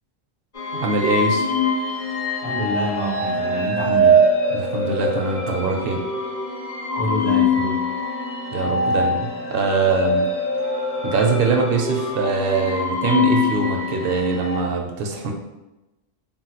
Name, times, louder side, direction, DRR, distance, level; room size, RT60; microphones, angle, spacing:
sound 1, 0.5-14.6, left 1 dB, 40° left, 0.7 m, -23 dB
voice 1, 0.8-1.5 4.5-6.0 8.5-10.3 11.0-15.3, right 4 dB, 65° right, 2 dB, 0.7 m, -22 dB
voice 2, 2.4-4.2 6.9-7.8, equal, 85° left, -7 dB, 1.4 m, -26 dB
sound 2, 3.2-12.9, right 1 dB, 15° right, 0.4 m, -39 dB
3.8 x 2.2 x 2.8 m, 0.99 s
omnidirectional pair, 1.1 m